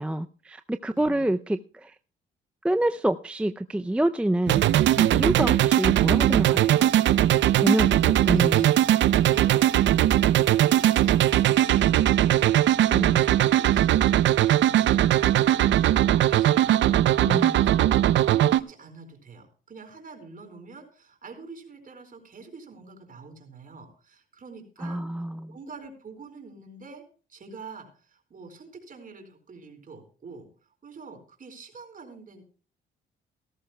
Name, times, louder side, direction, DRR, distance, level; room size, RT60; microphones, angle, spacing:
voice 1, 0.0-2.0 2.6-4.6 4.9-6.9 7.6-8.7 12.9-13.2 17.2-17.5 24.8-25.6, right 1 dB, 5° right, 9 dB, 0.4 m, -27 dB
voice 2, 0.9-1.3 7.9-8.7 9.2-18.0 18.3-25.0 25.5-27.0 27.3-30.5 30.8-32.4, right 4 dB, 45° right, 4 dB, 4.5 m, -46 dB
sound 1, 4.5-18.6, right 12 dB, 70° right, 0.5 m, -20 dB
18.0 x 13.5 x 2.2 m, 0.38 s
cardioid pair, 90°, 20 cm